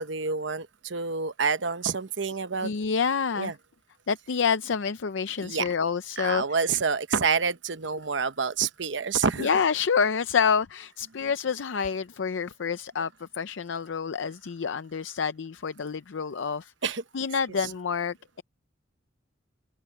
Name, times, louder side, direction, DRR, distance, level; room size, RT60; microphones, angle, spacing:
voice 1, 0.0-2.7 3.4-3.5 5.4-5.7 6.2-9.5 16.8-17.0 17.6-17.7, right 5 dB, 75° right, 1.0 m, -28 dB
voice 2, 2.6-3.5 4.1-6.4 9.4-16.7 17.1-18.4, left 6 dB, 80° left, 0.5 m, -28 dB
open air
head